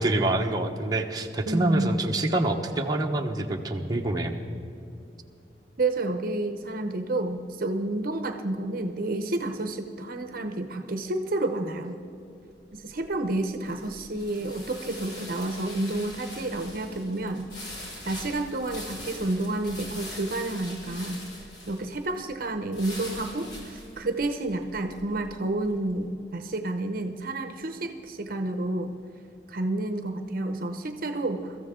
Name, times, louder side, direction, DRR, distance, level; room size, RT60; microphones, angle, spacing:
voice 1, 0.0-4.4, right 2 dB, 20° right, 1 dB, 1.0 m, -26 dB
voice 2, 1.5-2.0 5.8-12.0 12.7-17.5 18.0-21.2 21.7-28.9 29.5-31.6, right 2 dB, 55° right, 7 dB, 0.8 m, -30 dB
sound 1, 12.6-25.9, left 1 dB, 65° left, 4.2 m, -43 dB
23.5 x 14.0 x 3.7 m, 2.6 s
head